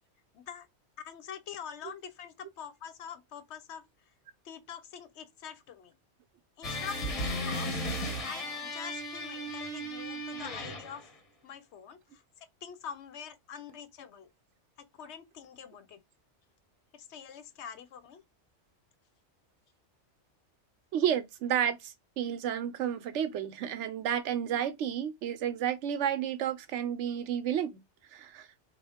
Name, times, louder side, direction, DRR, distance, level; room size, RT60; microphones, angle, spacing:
voice 1, 0.3-0.7 1.0-3.8 4.4-5.9 6.6-7.8 8.3-11.1 11.4-12.2 12.6-14.3 14.8-16.0 16.9-18.2, left 7 dB, 70° left, 0.9 m, -45 dB
sound 1, 6.6-11.1, equal, 35° left, 0.8 m, -35 dB
voice 2, 20.9-27.8 28.1-28.5, right 9 dB, 75° right, 0.9 m, -31 dB
3.6 x 2.3 x 3.4 m
omnidirectional pair, 1.2 m